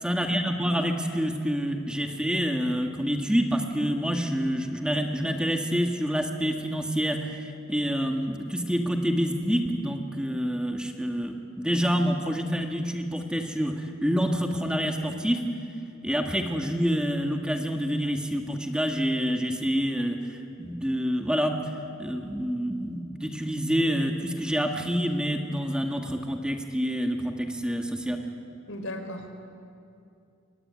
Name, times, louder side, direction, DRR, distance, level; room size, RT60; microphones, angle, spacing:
voice 1, 0.0-15.4 16.0-21.6 22.0-28.2, equal, 5° right, 2 dB, 1.8 m, -27 dB
voice 2, 28.7-29.4, left 1 dB, 80° left, 6 dB, 4.0 m, -36 dB
23.5 x 23.5 x 9.6 m, 2.5 s
head